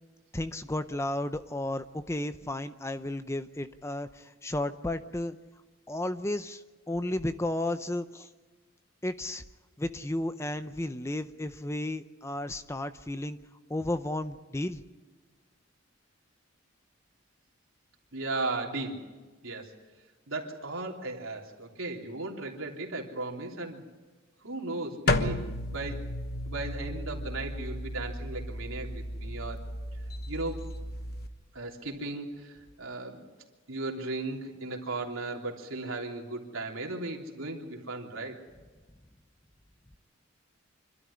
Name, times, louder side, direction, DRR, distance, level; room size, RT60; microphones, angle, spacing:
voice 1, 0.3-5.4 5.9-8.3 9.0-9.4 9.8-13.4 13.7-14.8, left 1 dB, 15° left, 11 dB, 0.6 m, -33 dB
voice 2, 18.1-19.1 19.4-19.7 20.3-23.8 24.4-26.1 26.5-29.7 30.3-30.6 31.5-33.3 33.7-38.4, right 2 dB, 85° right, 0 dB, 3.3 m, -36 dB
sound 1, 25.1-31.3, left 1 dB, 50° left, 1.2 m, -33 dB
26.0 x 12.5 x 9.8 m, 1.3 s
head